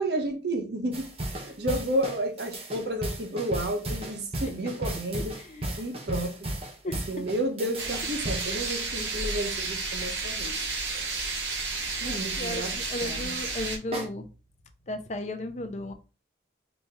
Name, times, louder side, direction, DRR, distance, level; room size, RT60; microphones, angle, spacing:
voice 1, 0.0-5.4 5.8-6.5 6.8-10.6 10.9-11.0 12.0-12.7 13.0-13.3, right 1 dB, 60° right, 0.9 m, -31 dB
sound 1, 0.9-9.1 13.9-14.1, right 1 dB, 30° right, 0.9 m, -35 dB
voice 2, 5.1-5.7 6.8-7.0 12.0-14.3 14.9-15.9, left 1 dB, 40° left, 0.5 m, -35 dB
sound 2, 7.8-13.8, right 3 dB, 80° right, 1.2 m, -32 dB
4.2 x 2.8 x 3.5 m
head